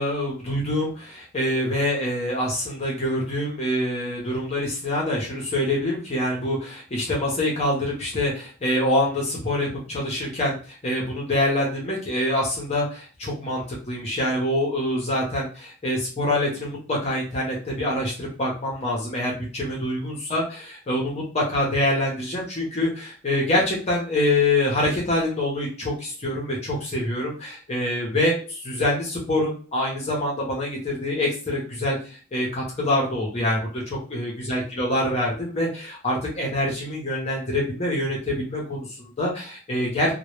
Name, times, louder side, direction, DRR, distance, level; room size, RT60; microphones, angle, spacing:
voice 1, 0.0-40.1, left 1 dB, 30° left, -2 dB, 0.5 m, -25 dB
2.1 x 2.0 x 3.0 m, 0.39 s
head